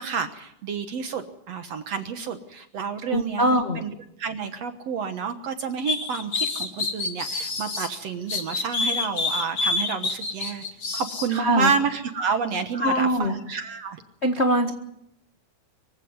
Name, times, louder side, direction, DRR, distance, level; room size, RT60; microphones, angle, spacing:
voice 1, 0.0-3.9 4.2-10.7 10.9-14.0, right 5 dB, 60° right, 8 dB, 1.8 m, -29 dB
voice 2, 3.1-3.8 11.3-11.7 12.7-13.4 14.2-14.7, equal, 75° left, 3 dB, 0.6 m, -22 dB
sound 1, 5.8-7.9 8.3-11.3, left 3 dB, 35° left, 2.3 m, -27 dB
25.0 x 16.0 x 9.5 m, 0.79 s
omnidirectional pair, 4.3 m